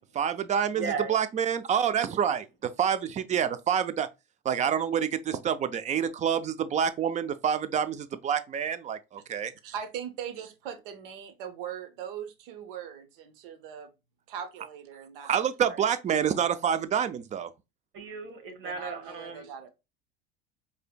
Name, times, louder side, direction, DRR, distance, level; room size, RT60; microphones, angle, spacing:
voice 1, 0.1-4.1 4.4-9.5 15.2-17.5, right 8 dB, 25° right, 0.4 m, -27 dB
voice 2, 0.7-1.1 17.9-19.5, right 5 dB, 45° right, 1.3 m, -35 dB
voice 3, 9.6-13.9 14.3-15.3 15.6-15.8 18.6-19.7, right 8 dB, 65° right, 0.8 m, -40 dB
4.8 x 2.8 x 2.2 m
hypercardioid pair, 75°, 29 cm